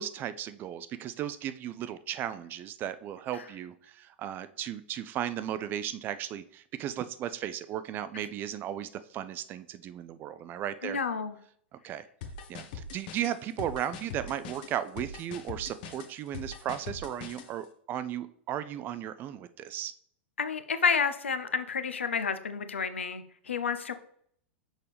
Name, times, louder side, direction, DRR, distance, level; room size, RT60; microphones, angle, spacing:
voice 1, 0.0-11.0 11.8-12.0 12.5-19.9, right 10 dB, 30° right, 13 dB, 0.4 m, -36 dB
voice 2, 10.8-11.4 20.4-23.9, left 6 dB, 75° left, 10 dB, 0.6 m, -30 dB
sound 1, 12.2-17.5, left 5 dB, 50° left, 0.9 m, -42 dB
6.3 x 5.3 x 3.3 m, 0.63 s
figure-of-eight pair, 95°, 7 cm